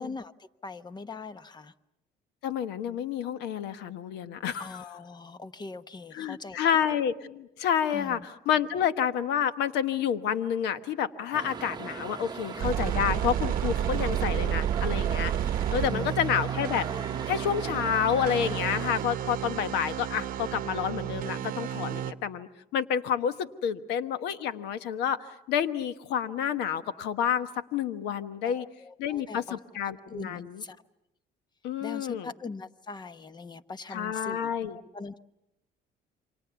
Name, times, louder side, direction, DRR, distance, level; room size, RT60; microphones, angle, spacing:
voice 1, 0.0-1.7 4.6-6.8 7.9-8.3 15.9-16.3 28.4-29.6 30.1-30.8 31.8-35.2, left 3 dB, 25° left, 13 dB, 1.0 m, -42 dB
voice 2, 2.4-4.8 6.1-16.9 17.3-28.7 29.0-30.6 31.6-32.3 33.9-34.8, left 8 dB, 85° left, 12 dB, 1.2 m, -29 dB
sound 1, 11.3-19.0, right 5 dB, 25° right, 1.0 m, -38 dB
sound 2, 12.6-22.1, right 11 dB, 55° right, 0.9 m, -31 dB
28.5 x 25.5 x 7.0 m, 0.93 s
cardioid pair, 110°, 17 cm